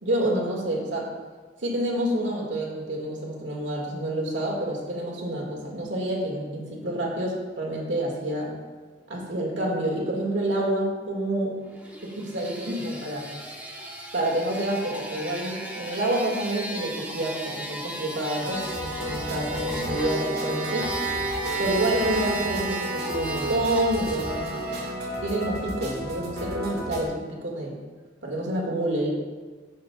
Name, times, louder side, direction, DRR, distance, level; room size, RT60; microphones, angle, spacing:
voice 1, 0.0-1.1 1.6-8.5 9.1-11.5 12.0-13.3 14.1-20.9 21.6-24.6 25.2-27.7 28.2-29.1, right 1 dB, 80° right, -1 dB, 2.0 m, -28 dB
sound 1, 11.7-24.9, right 3 dB, 10° right, 1.2 m, -35 dB
sound 2, 18.4-27.0, equal, 60° right, 1.8 m, -32 dB
14.5 x 6.5 x 2.4 m, 1.4 s
head